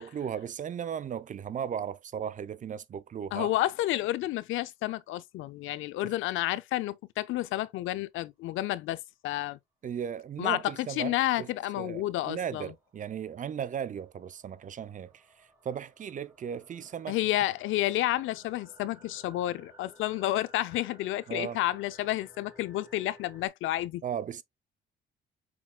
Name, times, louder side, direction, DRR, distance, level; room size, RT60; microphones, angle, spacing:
voice 1, 0.0-3.5 6.0-6.1 9.8-11.5 11.8-17.2 21.3-21.6 24.0-24.4, right 8 dB, 40° right, 0.5 m, -36 dB
voice 2, 3.3-9.0 9.2-9.6 10.4-12.7 17.1-24.0, left 15 dB, 85° left, 0.5 m, -30 dB
sound 1, 11.2-23.5, equal, 15° right, 2.7 m, -58 dB
6.0 x 3.7 x 2.2 m
cardioid pair, 90°, 20 cm